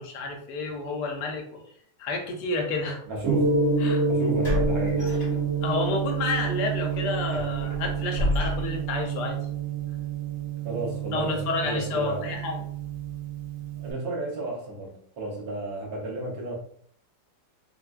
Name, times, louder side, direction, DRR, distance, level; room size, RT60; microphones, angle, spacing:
voice 1, 0.0-1.6 2.0-3.0 3.8-4.0 5.6-9.4 11.1-12.6, left 3 dB, 75° left, 2 dB, 1.2 m, -30 dB
voice 2, 3.1-3.6 4.1-5.3 10.6-12.4 13.8-16.6, right 2 dB, 60° right, -3 dB, 1.2 m, -33 dB
sound 1, 3.3-3.5 4.4-5.9 6.3-6.5 6.9-9.0, left 1 dB, 30° left, 0.8 m, -31 dB
Gong, 3.3-13.9, right 5 dB, 80° right, 1.3 m, -28 dB
3.4 x 2.1 x 2.3 m, 0.62 s
omnidirectional pair, 1.9 m